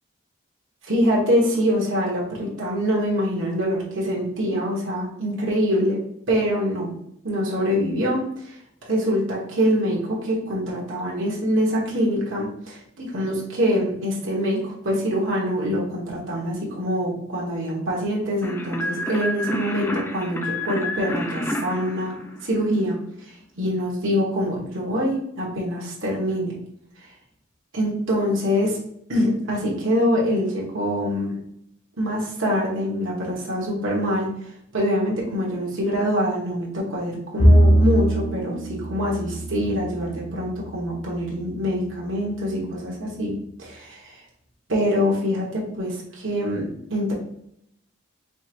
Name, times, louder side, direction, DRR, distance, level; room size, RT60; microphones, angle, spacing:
voice 1, 0.9-6.0 6.3-6.9 7.2-8.6 8.8-22.1 22.4-23.0 23.6-26.6 27.7-28.8 29.1-31.3 32.0-34.3 34.7-43.3 43.6-44.0 44.7-47.1, equal, 75° right, -3 dB, 1.5 m, -24 dB
sound 1, 18.4-22.9, left 1 dB, 10° left, 0.4 m, -29 dB
Bowed string instrument, 37.4-40.9, right 1 dB, 80° left, 1.5 m, -20 dB
5.2 x 3.1 x 2.6 m, 0.74 s
head